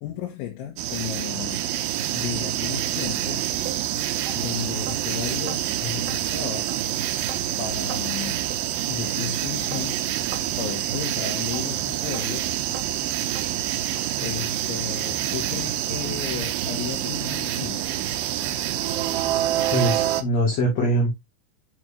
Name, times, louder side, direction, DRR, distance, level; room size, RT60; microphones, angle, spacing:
voice 1, 0.0-1.7 2.1-3.4 4.4-6.7 7.6-8.4 8.9-10.0 10.6-12.5 14.2-17.8, left 10 dB, 85° left, 3.7 m, -34 dB
sound 1, 0.8-20.2, right 12 dB, 90° right, 2.1 m, -27 dB
sound 2, 3.1-3.2 3.7-3.8 4.3-4.4 4.9-5.0 5.5-5.6 6.1-6.2 6.7-6.8 7.3-7.4 7.9-8.0 8.5-8.6 9.1-9.2 9.7-9.8 10.3-10.5 10.9-11.1 11.5-11.6 12.1-12.3 12.7-12.9 13.4-13.5 14.0-14.1 14.6-14.7 15.2-15.3 15.8-15.9, right 6 dB, 65° right, 2.7 m, -38 dB
voice 2, 19.7-21.1, equal, 45° left, 2.8 m, -22 dB
7.7 x 6.3 x 2.8 m
omnidirectional pair, 5.3 m